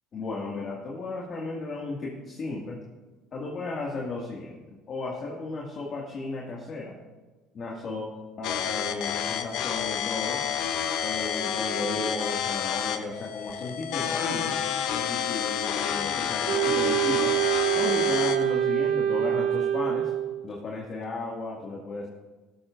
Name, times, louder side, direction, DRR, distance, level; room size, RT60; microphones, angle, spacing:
voice 1, 0.1-2.8 3.3-4.6 4.9-7.0 7.5-8.1 8.4-10.4 11.0-14.6 14.9-17.4 17.7-20.1 20.4-22.1, left 3 dB, 45° left, -2 dB, 2.1 m, -34 dB
sound 1, 8.4-18.4, left 9 dB, 70° left, 0.8 m, -29 dB
Wind instrument woodwind instrument, 16.5-20.4, right 11 dB, 70° right, 1.1 m, -25 dB
13.5 x 12.5 x 2.6 m, 1.2 s
supercardioid pair, 85°, 0 cm